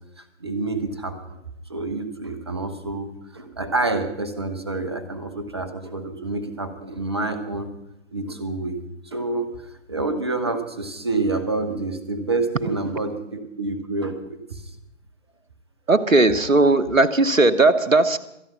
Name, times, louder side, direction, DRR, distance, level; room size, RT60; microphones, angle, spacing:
voice 1, 0.4-1.4 1.7-7.7 8.1-8.8 9.0-9.6 9.9-14.6, right 3 dB, 20° right, 10 dB, 1.0 m, -28 dB
voice 2, 15.9-18.2, right 2 dB, 80° right, 13 dB, 1.3 m, -17 dB
25.5 x 9.1 x 5.7 m, 0.83 s
figure-of-eight pair, 155°, 39 cm